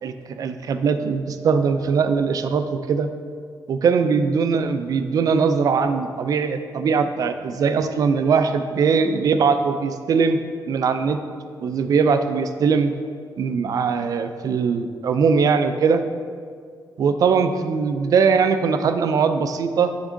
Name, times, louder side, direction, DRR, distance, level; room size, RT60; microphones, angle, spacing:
voice 1, 0.0-3.1 3.7-10.4 10.7-11.2 11.6-12.9 13.4-16.0 17.0-19.9, right 5 dB, 50° right, 9 dB, 0.4 m, -21 dB
9.7 x 3.6 x 3.7 m, 2.1 s
wide cardioid pair, 170°, 8 cm